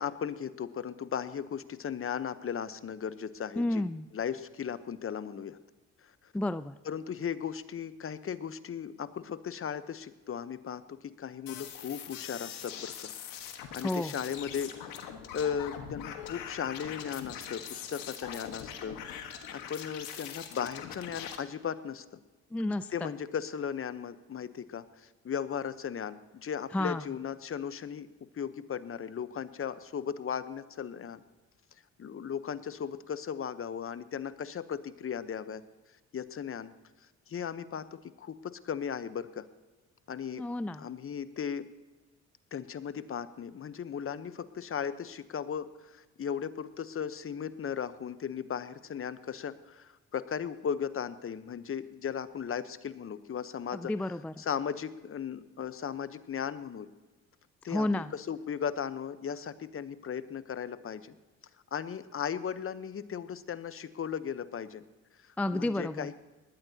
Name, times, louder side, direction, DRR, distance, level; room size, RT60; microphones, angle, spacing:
voice 1, 0.0-3.8 4.1-5.6 6.8-13.1 13.7-15.0 15.3-22.0 22.9-28.1 28.3-31.2 32.0-35.6 36.1-36.7 37.3-39.5 40.1-40.4 40.8-41.7 42.5-53.9 54.4-56.9 57.6-57.9 58.1-61.1 61.7-64.8 65.5-66.2, left 7 dB, 40° left, 13 dB, 0.9 m, -36 dB
voice 2, 3.6-4.1 6.3-6.8 13.8-14.1 22.5-23.1 26.7-27.0 40.3-40.9 53.7-54.3 57.7-58.1 65.4-66.1, left 1 dB, 5° left, 13 dB, 0.3 m, -31 dB
sound 1, 11.5-21.4, left 8 dB, 85° left, 1.5 m, -42 dB
19.5 x 13.0 x 2.8 m, 1.2 s
supercardioid pair, 65°, 33 cm